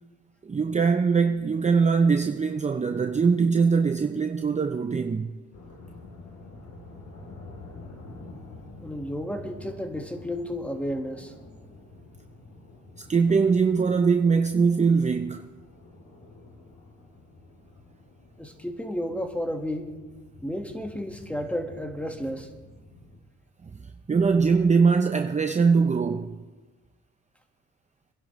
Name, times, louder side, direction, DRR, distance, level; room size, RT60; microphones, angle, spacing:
voice 1, 0.4-5.4 13.1-15.5 23.6-23.7 24.1-26.4, right 5 dB, 25° right, 0.7 m, -22 dB
sound 1, 5.5-23.2, left 2 dB, 65° left, 3.2 m, -48 dB
voice 2, 8.8-11.3 18.4-19.9 20.4-22.5, equal, 5° left, 1.6 m, -32 dB
25.5 x 11.0 x 3.2 m
cardioid pair, 90°, 30 cm